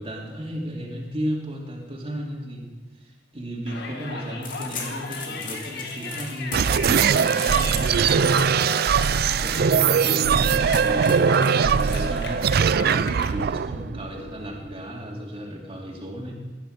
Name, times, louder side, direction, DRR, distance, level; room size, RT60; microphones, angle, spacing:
voice 1, 0.0-2.7 2.9-8.7 9.4-16.3, equal, 30° right, -2 dB, 2.9 m, -34 dB
Yell, 3.7-13.3, left 3 dB, 65° left, 2.1 m, -36 dB
sound 1, 4.4-12.4, left 5 dB, 50° left, 2.6 m, -39 dB
sound 2, 6.5-14.7, right 6 dB, 60° right, 0.4 m, -21 dB
20.0 x 10.0 x 6.6 m, 1.2 s
head